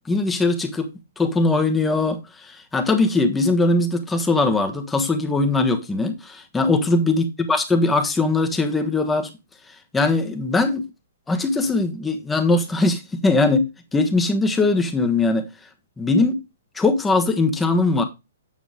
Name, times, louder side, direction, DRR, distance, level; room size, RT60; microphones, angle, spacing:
voice 1, 0.1-0.9 1.2-2.2 2.5-9.3 9.9-10.9 11.3-15.5 16.0-16.4 16.7-18.0, left 3 dB, 10° left, 1.3 m, -20 dB
8.7 x 6.8 x 3.1 m
figure-of-eight pair, 120°, 0 cm